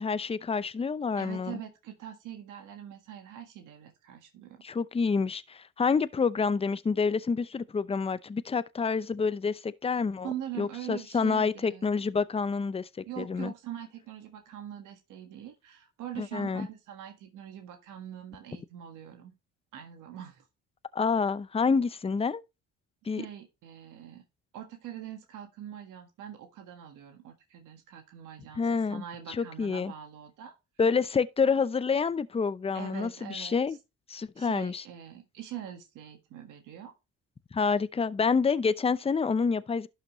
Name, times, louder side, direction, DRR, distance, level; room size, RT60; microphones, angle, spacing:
voice 1, 0.0-1.6 4.6-10.3 10.6-12.9 13.2-13.5 16.2-16.7 20.9-22.4 23.1-23.2 28.6-29.9 30.8-33.8 34.1-34.8 37.5-39.9, left 5 dB, 20° left, 0.6 m, -28 dB
voice 2, 1.2-4.6 10.2-11.9 13.0-19.3 19.7-20.4 23.2-24.2 24.5-30.5 32.7-33.6 34.1-36.9, right 10 dB, 90° right, 1.7 m, -43 dB
12.0 x 5.8 x 3.1 m
cardioid pair, 90°, 30 cm